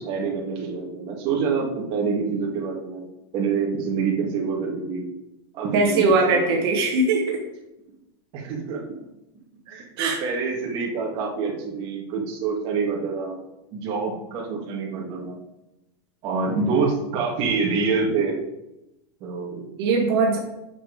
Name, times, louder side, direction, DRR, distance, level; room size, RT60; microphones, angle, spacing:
voice 1, 0.0-3.1 3.3-5.1 5.5-6.5 6.7-6.8 8.3-8.8 9.7-13.4 13.7-15.4 16.2-18.4 19.2-19.7, right 5 dB, 40° right, -1 dB, 1.9 m, -26 dB
voice 2, 5.7-7.4 10.0-10.2 16.3-16.6 19.8-20.4, right 3 dB, 65° right, 0 dB, 1.6 m, -21 dB
6.3 x 6.0 x 5.0 m, 0.93 s
supercardioid pair, 155°, 14 cm